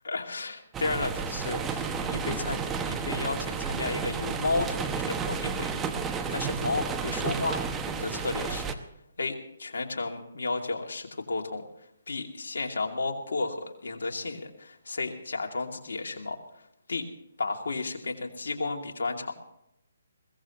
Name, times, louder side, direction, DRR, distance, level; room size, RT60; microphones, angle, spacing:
voice 1, 0.0-7.6 7.9-8.7 9.2-11.6 12.1-16.4 16.9-17.1 17.4-19.3, left 3 dB, 70° left, 2 dB, 2.5 m, -33 dB
sound 1, 0.7-8.8, right 6 dB, 15° right, 1.0 m, -32 dB
21.5 x 17.5 x 3.0 m, 0.79 s
figure-of-eight pair, 145°, 0 cm